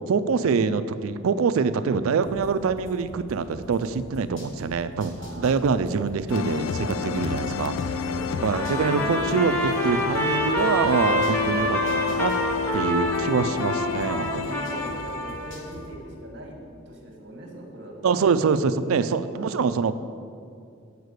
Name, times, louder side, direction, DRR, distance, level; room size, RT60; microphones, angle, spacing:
voice 1, 0.1-8.0 8.4-12.3 12.7-14.5 18.0-19.9, right 5 dB, 85° right, 13 dB, 0.4 m, -25 dB
sound 1, 2.2-4.7 5.0-8.1 8.4-11.5 11.9-15.0 15.3-15.8, equal, 65° left, 1.4 m, -43 dB
voice 2, 5.2-5.7 7.1-7.4 8.1-8.5 11.4-11.6 14.4-16.6 16.9-18.2 19.3-19.7, right 1 dB, 55° right, 1 dB, 1.4 m, -41 dB
sound 2, 6.3-16.1, left 6 dB, 85° left, 0.4 m, -29 dB
Trumpet, 8.5-15.6, equal, 10° left, 0.7 m, -28 dB
8.1 x 4.7 x 6.5 m, 2.4 s
head